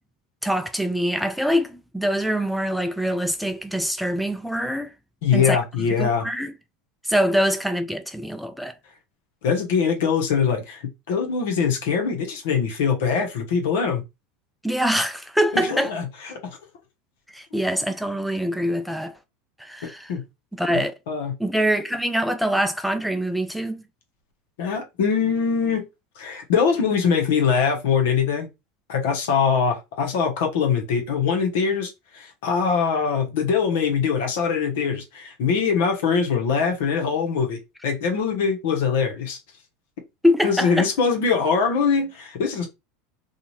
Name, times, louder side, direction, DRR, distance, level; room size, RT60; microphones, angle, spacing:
voice 1, 0.4-4.9 5.3-6.5 7.0-8.7 14.6-15.9 17.3-19.2 19.6-20.1 20.5-20.9 21.4-23.8 40.2-40.9, equal, ahead, 0.3 m, -24 dB
voice 2, 5.2-6.2 9.4-10.8 11.1-14.0 15.5-16.1 16.4-16.5 20.1-20.2 21.1-21.3 24.6-25.8 26.2-28.5 28.9-39.4 40.4-42.7, left 6 dB, 75° left, 1.0 m, -22 dB
2.5 x 2.4 x 3.1 m
hypercardioid pair, 105°, 0 cm